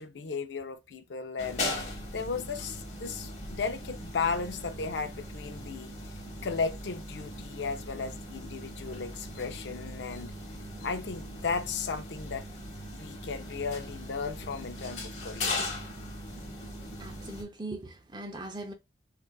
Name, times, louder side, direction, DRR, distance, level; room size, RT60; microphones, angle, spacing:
voice 1, 0.0-1.6 2.1-5.9 6.4-10.3 10.8-12.5 12.9-15.7, left 5 dB, 85° left, 0.5 m, -35 dB
sound 1, 1.4-17.4, left 1 dB, 40° left, 1.0 m, -39 dB
voice 2, 17.0-18.7, right 2 dB, 25° right, 0.5 m, -40 dB
3.8 x 2.4 x 2.3 m
head